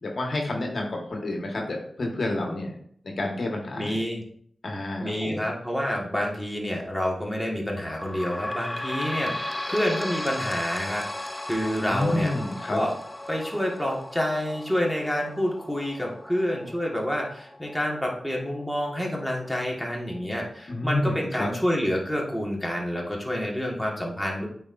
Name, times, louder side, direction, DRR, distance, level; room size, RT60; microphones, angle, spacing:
voice 1, 0.0-2.7 3.0-3.9 4.6-5.5 11.9-12.8 20.7-21.5, left 2 dB, 60° left, 1 dB, 1.4 m, -29 dB
voice 2, 3.8-4.2 5.0-12.3 12.7-13.0 13.3-24.5, equal, ahead, -2 dB, 1.7 m, -28 dB
sound 1, 7.8-20.9 21.5-21.6 21.9-22.0 22.8-22.9, left 1 dB, 15° left, 0.6 m, -37 dB
8.4 x 4.4 x 2.6 m, 0.63 s
cardioid pair, 45°, 0 cm